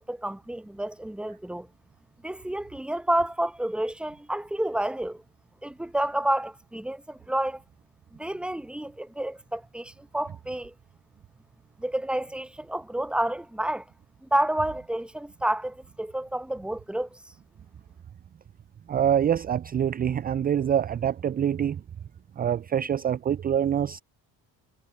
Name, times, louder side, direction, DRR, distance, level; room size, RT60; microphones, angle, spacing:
voice 1, 0.0-1.7 2.2-5.2 5.6-7.6 8.1-10.7 11.8-13.9 14.2-17.2, right 1 dB, ahead, 0.8 m, -29 dB
voice 2, 18.9-21.8 22.4-24.0, right 9 dB, 20° right, 0.4 m, -25 dB
hypercardioid pair, 45°, 48 cm